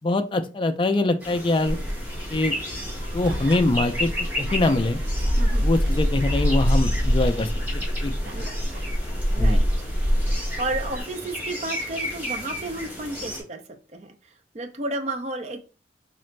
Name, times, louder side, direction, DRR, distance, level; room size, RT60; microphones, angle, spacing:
voice 1, 0.0-1.8 2.3-2.5 3.1-4.1 4.4-5.0 5.6-8.2 9.4-9.6, left 2 dB, 25° left, 8 dB, 0.3 m, -23 dB
sound 1, 1.2-13.4, left 1 dB, 10° right, 1.6 m, -34 dB
Gull seagull, 1.7-11.0, equal, 90° right, 1.1 m, -25 dB
Gasp, 3.3-3.7 4.2-4.9 5.3-7.8 8.2-9.3 10.0-10.1, right 2 dB, 60° right, 1.1 m, -46 dB
voice 2, 5.4-5.7 8.3-8.5 9.3-9.7 10.3-13.6 13.9-14.1 14.5-15.6, right 2 dB, 35° right, 5 dB, 0.5 m, -32 dB
4.0 x 2.5 x 3.2 m, 0.34 s
head